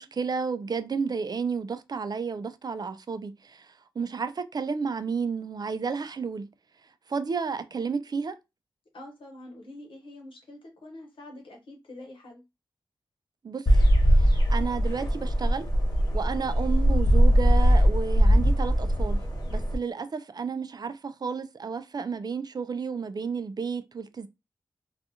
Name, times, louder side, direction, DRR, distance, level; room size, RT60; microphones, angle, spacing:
voice 1, 0.0-6.5 7.1-8.4 13.4-13.8 14.1-15.7 16.1-19.2 19.5-24.3, right 5 dB, 50° right, 0.4 m, -32 dB
voice 2, 8.9-12.4, left 1 dB, 75° left, 1.0 m, -46 dB
sound 1, 13.7-19.7, equal, 45° left, 1.1 m, -21 dB
2.4 x 2.3 x 2.7 m
cardioid pair, 45°, 9 cm